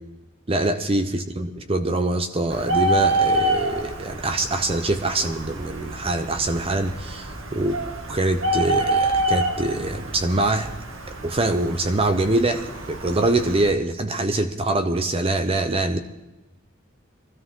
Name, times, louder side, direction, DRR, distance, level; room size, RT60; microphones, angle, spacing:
voice 1, 0.5-7.8 8.1-10.7 11.2-16.0, right 2 dB, 30° right, 7 dB, 0.8 m, -24 dB
Bird, 2.5-13.7, right 1 dB, 80° right, 2.1 m, -27 dB
23.0 x 13.5 x 3.7 m, 1.1 s
head